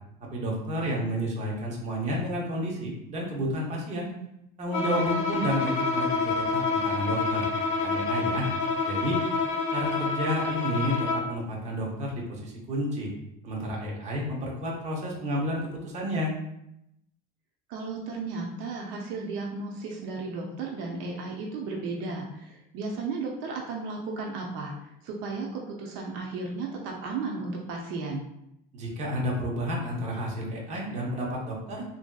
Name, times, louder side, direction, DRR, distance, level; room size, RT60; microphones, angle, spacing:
voice 1, 0.3-4.1 4.6-7.5 7.8-8.5 8.8-9.2 9.7-13.1 13.4-16.3 28.7-31.8, equal, 35° right, -2 dB, 0.8 m, -31 dB
Bowed string instrument, 4.7-11.4, left 4 dB, 90° left, 0.6 m, -28 dB
voice 2, 5.1-5.5 17.7-28.2, right 3 dB, 75° right, 0 dB, 0.6 m, -34 dB
3.3 x 2.6 x 2.3 m, 0.81 s
cardioid pair, 145°, 21 cm